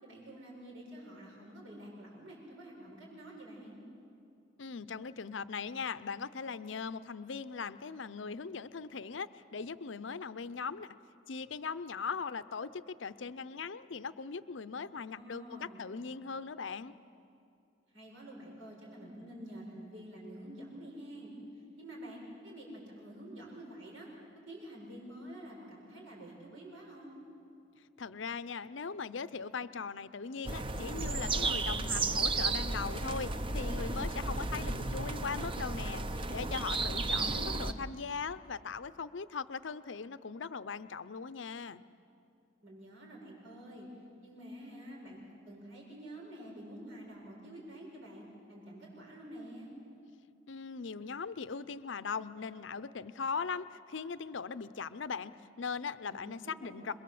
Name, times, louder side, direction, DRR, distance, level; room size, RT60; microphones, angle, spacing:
voice 1, 0.0-3.8 15.0-15.9 17.9-21.3 21.8-24.1 24.5-27.2 37.0-37.7 42.6-43.9 44.2-49.7 56.1-57.0, right 1 dB, 85° right, -2 dB, 7.0 m, -48 dB
voice 2, 4.6-10.9 11.3-16.9 28.0-41.8 50.5-55.3 55.6-56.9, left 5 dB, 65° left, 15 dB, 0.6 m, -39 dB
sound 1, 30.4-37.7, right 3 dB, 25° right, 0.7 m, -33 dB
27.5 x 22.5 x 7.7 m, 2.5 s
head